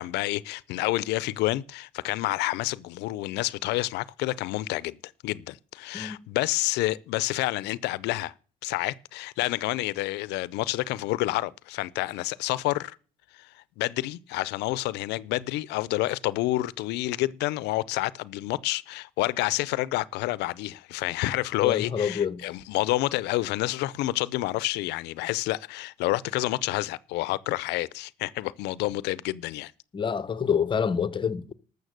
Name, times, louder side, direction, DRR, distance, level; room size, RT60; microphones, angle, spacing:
voice 1, 0.0-5.0 5.2-8.3 8.6-13.0 13.3-13.5 13.8-29.7, left 18 dB, 85° left, 0.5 m, -29 dB
voice 2, 21.6-22.5 29.9-31.5, left 7 dB, 30° left, 0.7 m, -27 dB
13.0 x 6.8 x 6.5 m
cardioid pair, 110°, 17 cm